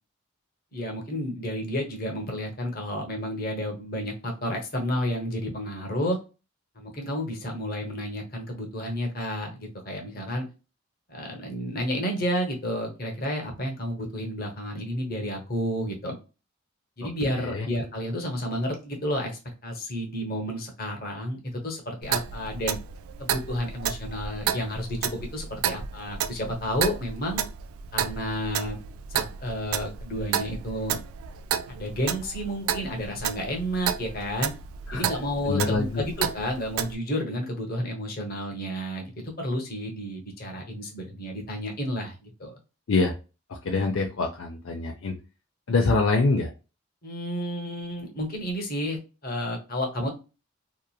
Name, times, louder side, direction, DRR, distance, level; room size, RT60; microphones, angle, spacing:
voice 1, 0.7-6.2 6.8-10.5 11.1-16.2 17.0-22.8 23.2-27.4 27.9-28.8 29.1-31.0 31.7-34.5 34.9-42.6 47.0-50.1, equal, 45° left, 1 dB, 0.9 m, -31 dB
voice 2, 17.3-17.7 34.9-35.1 35.4-36.0 42.9-43.2 43.5-45.2 45.7-46.5, left 3 dB, 70° left, 1 dB, 0.5 m, -25 dB
Clock, 22.0-36.9, right 8 dB, 90° right, 0.3 m, -32 dB
2.9 x 2.4 x 2.3 m, 0.31 s
head